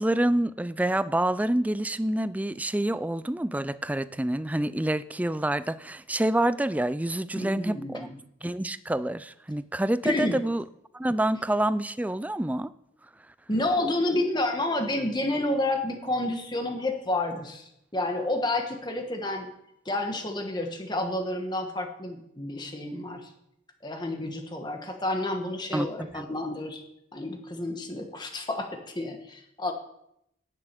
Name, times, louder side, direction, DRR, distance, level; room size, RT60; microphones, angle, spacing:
voice 1, 0.0-8.1 8.4-10.6 10.9-12.7 25.7-25.9 26.1-26.3, right 1 dB, 10° right, 15 dB, 0.4 m, -27 dB
voice 2, 7.4-8.2 10.0-10.4 13.5-19.5 19.8-23.3 23.8-26.8 27.1-29.7, left 2 dB, 20° left, 4 dB, 1.5 m, -30 dB
11.0 x 7.7 x 9.1 m, 0.78 s
head